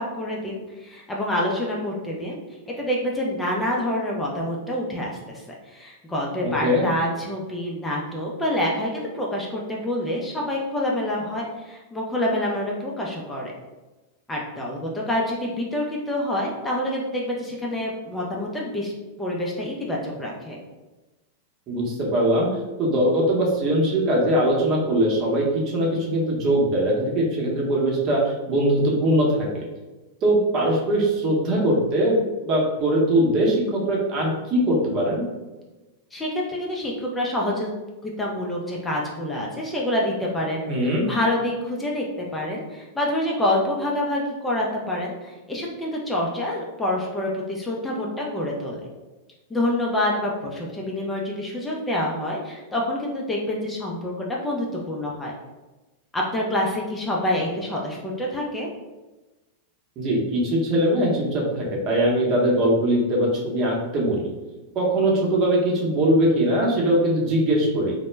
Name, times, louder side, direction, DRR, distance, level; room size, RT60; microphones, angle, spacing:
voice 1, 0.0-2.4 2.7-13.5 14.3-18.9 19.2-20.6 36.1-37.7 38.0-40.6 41.0-48.8 49.5-55.3 56.1-58.7, left 1 dB, 10° left, -3 dB, 0.4 m, -27 dB
voice 2, 6.4-6.8 21.7-22.5 22.8-29.6 30.2-35.2 40.6-41.0 60.0-64.3 64.7-67.9, right 1 dB, 40° right, -2 dB, 0.8 m, -21 dB
2.1 x 2.0 x 3.2 m, 1.1 s
hypercardioid pair, 110°, 0 cm